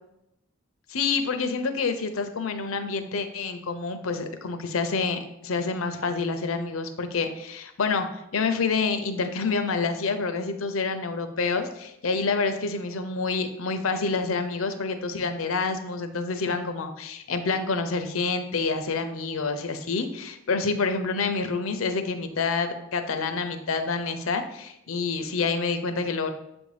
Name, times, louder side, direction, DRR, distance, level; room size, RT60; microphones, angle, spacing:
voice 1, 0.9-26.3, left 4 dB, 80° left, 7 dB, 0.6 m, -28 dB
7.2 x 2.6 x 4.9 m, 0.86 s
head